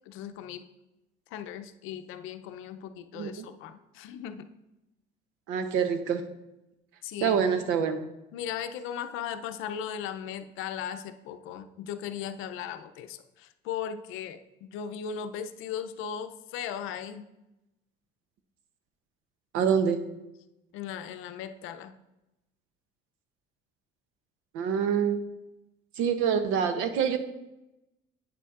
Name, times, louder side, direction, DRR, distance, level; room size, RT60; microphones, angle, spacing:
voice 1, 0.1-0.6 1.3-4.5 7.0-7.7 8.3-17.3 20.7-21.9, left 8 dB, 80° left, 10 dB, 0.5 m, -37 dB
voice 2, 3.1-3.5 5.5-6.2 7.2-8.0 19.5-20.0 24.5-25.2 26.0-27.2, right 7 dB, 85° right, 9 dB, 0.8 m, -26 dB
8.9 x 6.9 x 2.4 m, 0.94 s
cardioid pair, 135°, 20 cm